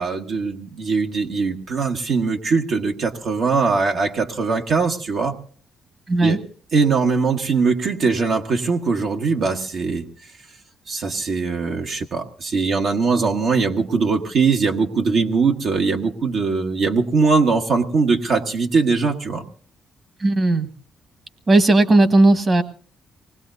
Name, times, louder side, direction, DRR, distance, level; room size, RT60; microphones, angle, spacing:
voice 1, 0.0-5.3 6.2-6.4 6.7-10.0 10.9-19.4, right 4 dB, 65° right, 2 dB, 1.3 m, -21 dB
voice 2, 20.2-20.7 21.5-22.6, right 2 dB, 35° right, 9 dB, 1.4 m, -15 dB
24.5 x 19.5 x 2.6 m, 0.44 s
cardioid pair, 90°, 0 cm